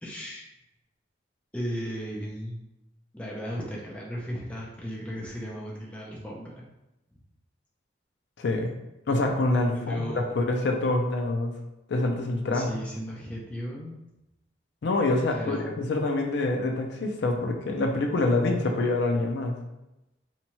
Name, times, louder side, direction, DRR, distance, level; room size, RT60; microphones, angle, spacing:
voice 1, 0.0-0.5 1.5-2.6 3.1-6.5 7.1-7.2 9.7-10.4 12.5-14.0 15.3-15.7, equal, 5° left, -4 dB, 0.4 m, -35 dB
voice 2, 8.4-8.7 9.1-11.5 11.9-12.7 14.8-19.6, left 2 dB, 70° left, 2 dB, 0.4 m, -26 dB
2.8 x 2.2 x 2.8 m, 0.93 s
head